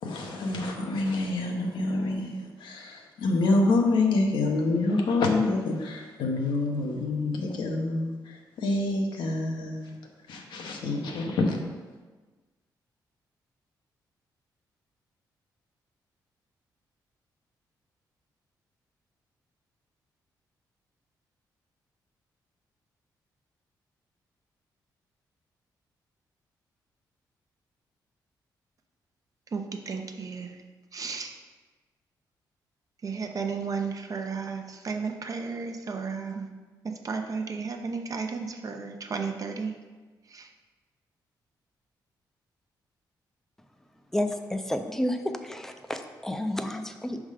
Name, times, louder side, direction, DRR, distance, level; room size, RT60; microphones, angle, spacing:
voice 1, 0.0-9.9 10.3-11.6, left 2 dB, 80° left, 1 dB, 0.9 m, -27 dB
voice 2, 29.5-30.5 30.9-31.3 33.0-36.5 37.0-39.7 40.3-40.5, right 5 dB, 45° right, 4 dB, 0.7 m, -33 dB
voice 3, 44.1-47.2, left 1 dB, 5° left, 6 dB, 0.5 m, -30 dB
5.4 x 3.6 x 4.9 m, 1.3 s
cardioid pair, 75°, 8 cm